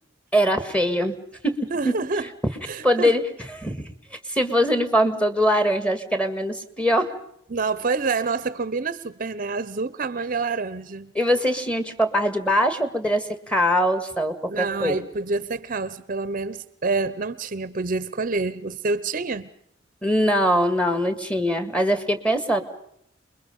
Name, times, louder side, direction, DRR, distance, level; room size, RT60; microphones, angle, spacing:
voice 1, 0.3-1.2 1.4-2.0 2.8-3.2 3.5-7.2 11.2-15.0 20.0-22.6, equal, 5° left, 1.9 m, -22 dB
voice 2, 1.7-2.3 2.7-3.1 7.5-11.1 14.5-19.5, right 4 dB, 45° right, 0.8 m, -27 dB
29.0 x 22.0 x 5.4 m
head